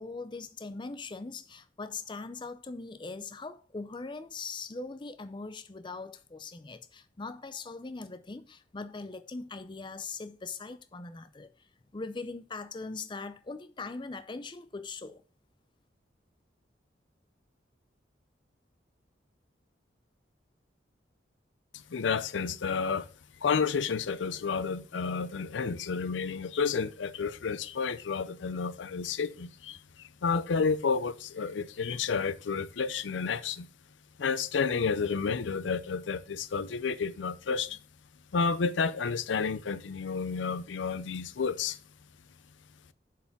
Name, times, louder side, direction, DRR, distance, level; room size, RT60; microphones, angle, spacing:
voice 1, 0.0-11.5 11.9-15.2, left 3 dB, 25° left, 0.5 m, -41 dB
voice 2, 21.9-23.1 23.4-33.7 34.2-37.8 38.3-41.8, left 5 dB, 85° left, 0.5 m, -31 dB
7.0 x 4.8 x 5.9 m
head